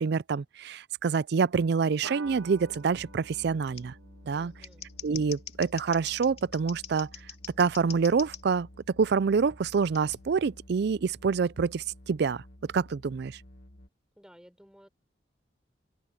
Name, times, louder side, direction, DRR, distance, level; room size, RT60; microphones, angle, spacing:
voice 1, 0.0-3.9 4.3-4.5 5.0-7.1 7.6-8.7 9.0-12.4 12.7-13.4, right 5 dB, 60° right, 0.4 m, -27 dB
sound 1, 2.0-6.9, right 4 dB, 90° right, 0.9 m, -49 dB
sound 2, 2.2-13.9, left 1 dB, 55° left, 1.4 m, -53 dB
Scissors, 2.7-2.8 3.7-3.8 4.5-8.4 9.9-10.2, left 8 dB, 35° left, 2.5 m, -43 dB
voice 2, 4.3-4.9 14.2-14.9, equal, 5° right, 3.8 m, -55 dB
open air
head